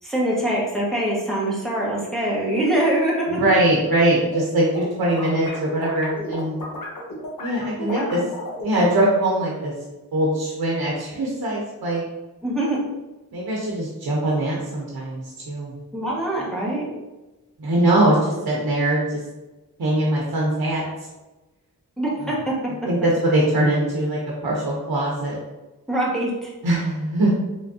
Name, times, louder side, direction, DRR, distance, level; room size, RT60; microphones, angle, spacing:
voice 1, 0.0-3.4 7.8-8.1 12.4-12.8 15.9-16.9 22.0-22.5 25.9-26.5, right 1 dB, ahead, -6 dB, 1.4 m, -23 dB
voice 2, 3.3-6.6 7.4-8.2 8.6-9.7 10.1-12.0 13.3-15.7 17.6-19.2 19.8-20.8 22.9-25.4 26.6-27.3, right 1 dB, 75° right, -4 dB, 0.9 m, -22 dB
sound 1, 3.9-4.4 4.7-8.9, left 2 dB, 65° left, 1.0 m, -34 dB
3.5 x 3.4 x 2.7 m, 1.1 s
cardioid pair, 45°, 36 cm